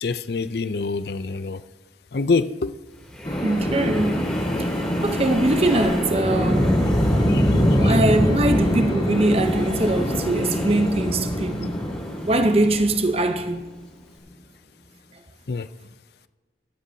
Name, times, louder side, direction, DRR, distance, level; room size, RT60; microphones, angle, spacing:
voice 1, 0.0-1.6 2.1-2.7 7.3-7.5 7.8-7.9 15.5-15.7, left 4 dB, 60° left, 0.5 m, -25 dB
Wind, 3.1-13.4, equal, 5° left, 3.0 m, -25 dB
sound 1, 3.2-14.3, equal, 25° left, 1.6 m, -28 dB
voice 2, 3.4-4.2 5.0-6.8 7.8-11.8 12.3-13.7, right 1 dB, 35° right, 0.8 m, -22 dB
15.0 x 13.0 x 2.8 m
head